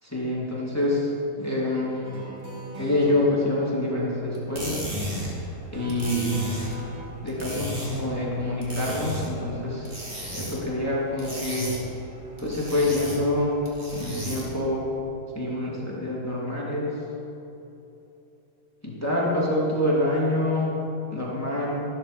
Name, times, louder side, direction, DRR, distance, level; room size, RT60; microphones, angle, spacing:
voice 1, 0.0-2.2 2.8-4.9 5.2-6.4 7.2-9.9 10.3-11.7 12.4-13.6 13.9-14.9 15.3-17.0 18.8-20.8 21.1-21.9, left 1 dB, 5° left, -5 dB, 2.5 m, -26 dB
sound 1, 2.0-3.3 5.7-7.0, equal, 75° right, 2.7 m, -38 dB
sound 2, 4.3-14.7, equal, 25° right, 2.4 m, -35 dB
14.0 x 12.0 x 5.1 m, 3.0 s
omnidirectional pair, 2.3 m